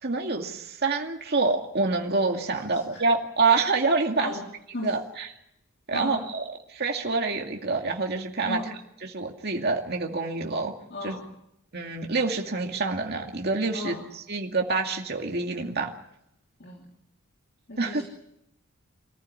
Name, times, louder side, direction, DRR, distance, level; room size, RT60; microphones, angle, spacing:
voice 1, 0.0-4.3 4.8-5.3 5.9-6.4 6.7-8.6 9.0-10.7 11.0-11.2 11.7-13.9 14.3-15.9 17.8-18.0, right 3 dB, 50° right, 2 dB, 2.3 m, -26 dB
voice 2, 2.5-3.0 4.2-4.5 4.7-5.0 5.9-6.3 8.4-8.8 10.9-11.3 13.7-14.1 16.6-16.8 17.7-18.0, left 2 dB, 50° left, 0 dB, 3.1 m, -36 dB
24.5 x 14.5 x 9.8 m, 0.79 s
head